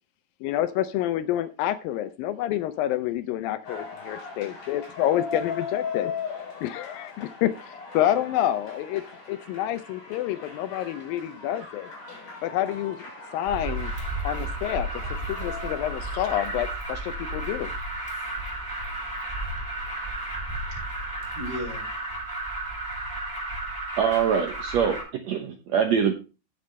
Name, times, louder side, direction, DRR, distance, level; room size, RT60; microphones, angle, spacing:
voice 1, 0.4-6.1 6.6-9.0 9.3-11.9 12.4-13.1 13.3-13.9 14.2-14.9 15.3-16.7 17.3-17.7, left 12 dB, 80° left, 11 dB, 2.4 m, -28 dB
sound 1, 3.6-16.2, left 5 dB, 65° left, 6.3 m, -39 dB
Alarm, 13.5-25.0, right 2 dB, 5° right, 4.4 m, -33 dB
voice 2, 16.3-16.7 18.2-21.9, left 1 dB, 30° left, -2 dB, 5.4 m, -42 dB
voice 3, 24.0-26.1, right 7 dB, 70° right, 5 dB, 1.8 m, -24 dB
16.5 x 6.9 x 3.2 m, 0.31 s
omnidirectional pair, 4.1 m